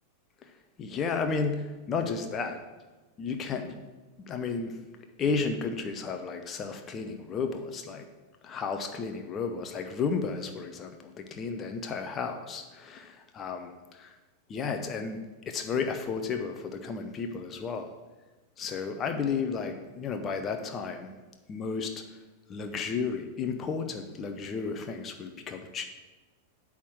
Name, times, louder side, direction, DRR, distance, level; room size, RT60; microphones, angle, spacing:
voice 1, 0.8-2.6 3.2-3.7 4.3-4.8 5.2-8.1 8.4-14.1 14.5-17.9 18.6-21.1 21.5-22.2 22.5-25.9, left 5 dB, 25° left, 6 dB, 0.7 m, -33 dB
8.4 x 3.6 x 6.2 m, 1.2 s
figure-of-eight pair, 90°, 0 cm